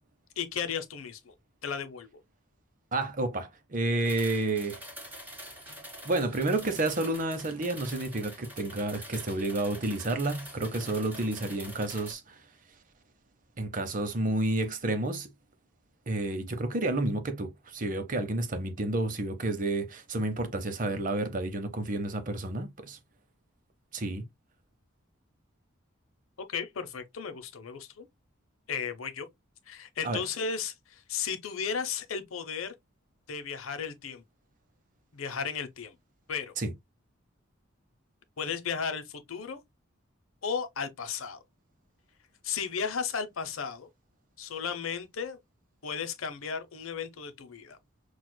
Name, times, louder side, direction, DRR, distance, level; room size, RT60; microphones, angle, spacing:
voice 1, 0.4-1.3 1.6-2.1 26.5-28.1 28.7-29.3 29.7-32.7 33.3-34.2 35.1-35.9 36.3-36.5 38.4-39.6 40.4-41.4 42.4-43.9 44.4-45.4 45.8-47.8, left 6 dB, 85° left, 0.7 m, -34 dB
voice 2, 2.9-4.8 6.0-12.4 13.6-15.3 16.1-23.0 23.9-24.2 30.0-30.2 36.6-36.7, right 2 dB, 40° right, 0.7 m, -30 dB
sound 1, 4.0-12.1, equal, 10° right, 1.5 m, -45 dB
6.1 x 2.3 x 2.2 m
head